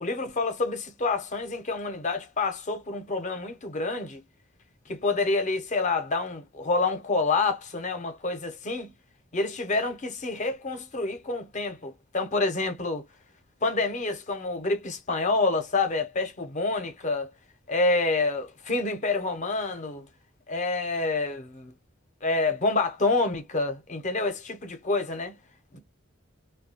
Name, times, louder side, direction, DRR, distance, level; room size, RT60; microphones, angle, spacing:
voice 1, 0.0-4.2 4.9-8.9 9.3-13.0 13.6-17.3 17.7-20.1 20.5-21.7 22.2-25.3, left 3 dB, 40° left, 0.6 m, -28 dB
2.6 x 2.3 x 2.8 m
head